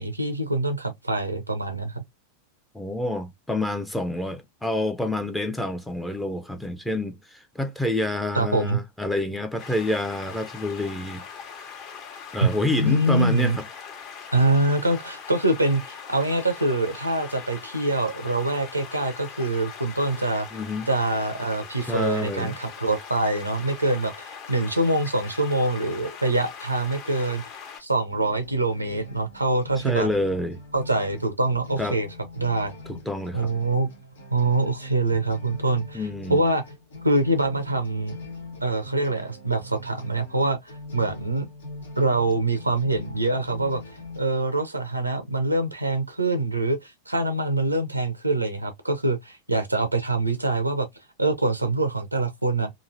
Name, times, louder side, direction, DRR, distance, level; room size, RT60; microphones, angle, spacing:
voice 1, 0.0-2.0 8.3-8.8 12.4-13.6 14.3-20.5 20.9-27.4 27.8-30.1 30.7-32.1 32.4-32.7 33.3-33.9 34.3-36.6 37.0-38.2 38.6-41.5 42.0-43.8 44.2-50.9 51.2-52.7, right 2 dB, 85° right, 0.5 m, -24 dB
voice 2, 2.7-11.2 12.3-13.5 20.5-20.9 21.9-22.6 29.8-30.6 31.8-32.0 32.9-33.5 35.9-36.4, left 1 dB, 5° left, 0.5 m, -28 dB
sound 1, 9.6-27.8, left 6 dB, 40° left, 0.9 m, -41 dB
sound 2, 28.1-44.2, left 2 dB, 70° left, 1.1 m, -42 dB
3.0 x 2.5 x 2.5 m
figure-of-eight pair, 90°, 0 cm